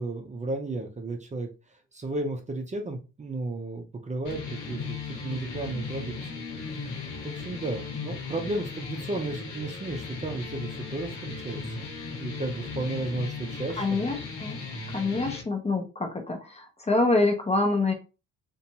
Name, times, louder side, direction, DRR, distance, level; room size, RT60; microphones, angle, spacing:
voice 1, 0.0-1.5 1.9-14.0, right 2 dB, 25° right, 3 dB, 0.5 m, -34 dB
sound 1, 4.2-15.4, left 4 dB, 90° left, 0.8 m, -37 dB
voice 2, 13.8-14.6 14.9-17.9, left 2 dB, 20° left, 4 dB, 0.6 m, -26 dB
2.5 x 2.2 x 2.9 m, 0.31 s
cardioid pair, 90°, 30 cm